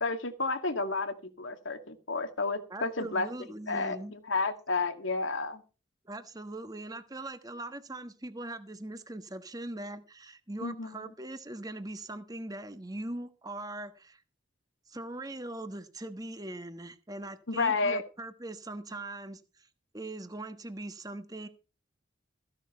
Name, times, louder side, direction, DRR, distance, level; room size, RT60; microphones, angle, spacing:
voice 1, 0.0-3.3 3.7-5.6 10.6-11.0 17.5-18.0, left 3 dB, 80° left, 2.2 m, -31 dB
voice 2, 2.7-4.1 6.0-14.2 14.9-19.7 19.9-21.5, right 1 dB, 20° right, 1.3 m, -41 dB
15.0 x 11.0 x 4.5 m
head